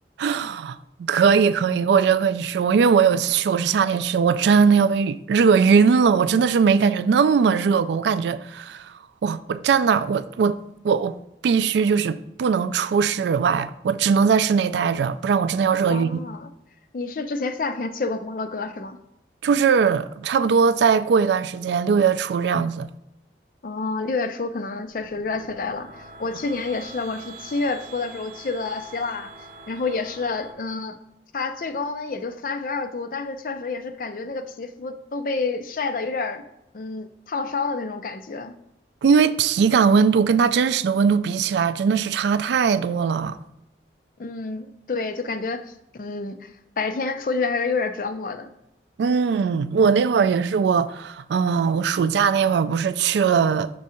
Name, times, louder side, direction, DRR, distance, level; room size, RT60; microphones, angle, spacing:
voice 1, 0.2-8.9 9.2-11.2 11.4-16.2 19.4-22.9 39.0-43.4 49.0-53.7, right 6 dB, 75° right, 0.3 m, -20 dB
voice 2, 15.9-16.5 16.9-19.0 23.6-29.3 29.7-31.0 31.3-36.4 36.7-38.5 44.2-45.6 45.9-46.5 46.8-48.5, left 4 dB, 50° left, 0.4 m, -28 dB
sound 1, 24.8-30.5, right 3 dB, 45° right, 1.2 m, -44 dB
6.1 x 3.6 x 4.3 m
head